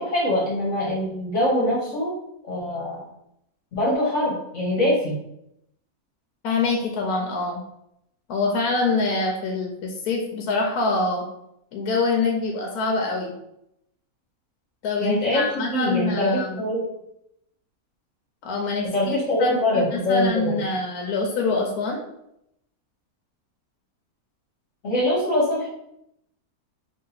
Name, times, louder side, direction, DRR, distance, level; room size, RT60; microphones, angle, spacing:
voice 1, 0.0-2.1 2.4-3.0 3.7-5.1 15.0-16.9 18.9-20.6 24.8-25.7, left 1 dB, 55° left, -5 dB, 1.2 m, -23 dB
voice 2, 6.4-7.6 8.3-11.3 11.7-13.3 14.8-16.6 18.4-22.0, left 3 dB, 80° left, 1 dB, 1.1 m, -25 dB
2.9 x 2.7 x 3.9 m, 0.80 s
omnidirectional pair, 1.6 m